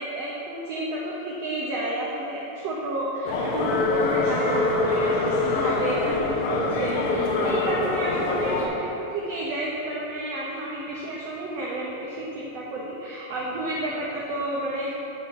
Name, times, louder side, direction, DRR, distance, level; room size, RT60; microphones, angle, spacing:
voice 1, 0.0-14.9, right 1 dB, 75° right, -4 dB, 1.5 m, -30 dB
sound 1, 3.3-8.7, left 3 dB, 85° left, 2.6 m, -24 dB
6.9 x 6.7 x 6.0 m, 3.0 s
omnidirectional pair, 3.9 m